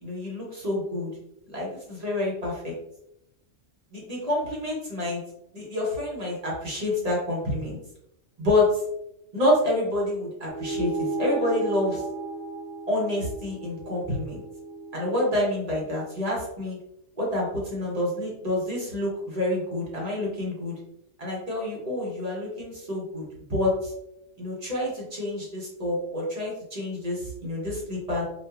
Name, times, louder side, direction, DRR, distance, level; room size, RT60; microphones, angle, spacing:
voice 1, 0.0-1.1 1.5-2.8 3.9-5.2 5.5-7.8 8.4-8.8 9.3-12.0 12.9-14.4 14.9-16.8 17.2-20.8 21.2-23.9 24.4-28.2, left 1 dB, 35° right, -4 dB, 0.8 m, -28 dB
sound 1, 10.5-15.3, right 3 dB, 85° right, 1.0 m, -34 dB
2.8 x 2.3 x 2.3 m, 0.83 s
omnidirectional pair, 1.3 m